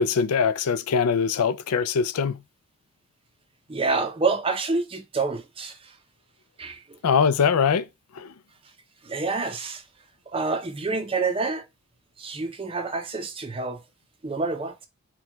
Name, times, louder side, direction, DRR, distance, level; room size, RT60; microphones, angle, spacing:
voice 1, 0.0-2.4 7.0-7.9 8.2-8.3, left 6 dB, 80° left, 0.4 m, -22 dB
voice 2, 3.7-6.0 6.6-7.0 9.0-9.8 10.3-11.7 12.2-13.8 14.2-14.9, right 3 dB, 25° right, 0.5 m, -28 dB
4.6 x 2.3 x 4.2 m
head